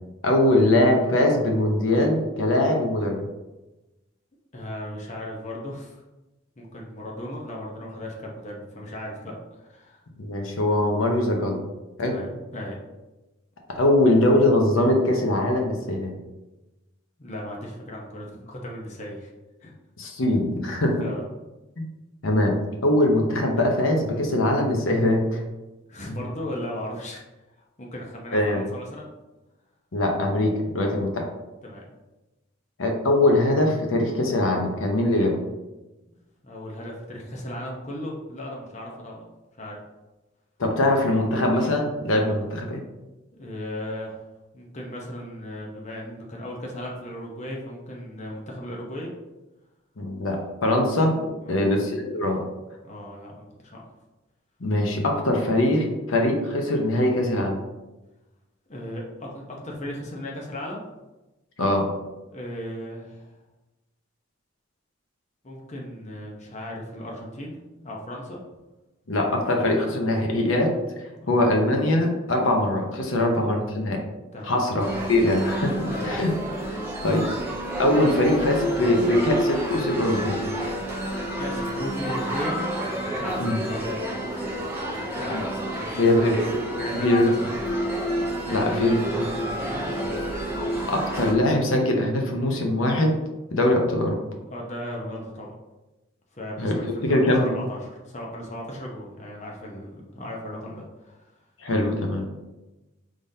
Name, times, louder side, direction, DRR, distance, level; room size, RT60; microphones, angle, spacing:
voice 1, 0.2-3.2 10.2-11.6 12.0-12.2 13.7-16.1 20.0-21.1 21.8-21.9 22.2-25.4 26.0-26.2 28.3-28.6 29.9-31.3 32.8-35.3 40.6-42.8 50.0-52.4 54.6-57.6 61.6-61.8 69.1-70.7 71.3-74.0 74.4-75.7 76.0-76.3 77.0-77.3 77.8-80.4 83.4-83.6 85.3-85.5 85.9-86.4 86.9-87.3 88.5-89.3 90.9-93.1 93.5-94.2 96.6-97.5 101.6-102.2, left 1 dB, 80° left, 2 dB, 0.8 m, -22 dB
voice 2, 4.5-6.0 6.6-10.0 12.0-12.8 17.2-19.3 19.6-19.7 21.0-21.2 25.9-27.2 27.8-29.1 31.6-31.9 36.4-39.2 39.6-39.8 43.4-44.2 44.5-49.1 51.4-51.7 52.8-53.8 58.7-60.8 62.3-63.3 65.4-68.4 71.2-71.3 73.1-73.4 74.3-74.6 75.9-76.1 81.4-82.6 83.0-84.4 84.8-86.2 86.8-87.5 88.5-88.8 89.4-90.1 94.5-95.5 96.3-101.2, left 1 dB, 35° left, -1 dB, 0.7 m, -36 dB
sound 1, 74.8-91.3, right 1 dB, 10° right, 0.8 m, -29 dB
5.0 x 3.7 x 2.7 m, 1.0 s
head